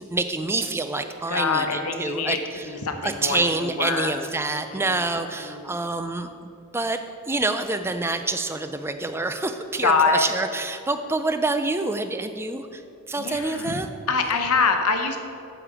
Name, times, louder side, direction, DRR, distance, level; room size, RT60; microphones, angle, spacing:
voice 1, 0.0-2.7 3.0-12.8 13.1-13.9, right 2 dB, 10° right, 9 dB, 0.3 m, -27 dB
voice 2, 1.3-2.4 2.7-5.0 5.4-5.7 9.8-10.3 13.2-13.8 14.1-15.2, left 4 dB, 85° left, 5 dB, 0.9 m, -25 dB
12.0 x 5.1 x 4.9 m, 2.7 s
head